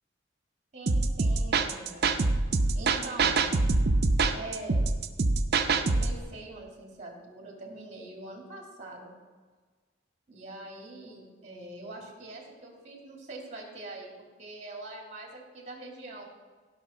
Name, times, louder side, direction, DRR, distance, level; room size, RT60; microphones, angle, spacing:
voice 1, 0.7-2.1 2.7-3.5 4.3-4.8 5.7-9.1 10.3-14.1 14.4-16.3, right 2 dB, 40° right, 0 dB, 2.7 m, -43 dB
sound 1, 0.9-6.2, right 3 dB, 60° right, 0.7 m, -25 dB
16.0 x 5.9 x 4.3 m, 1.5 s
head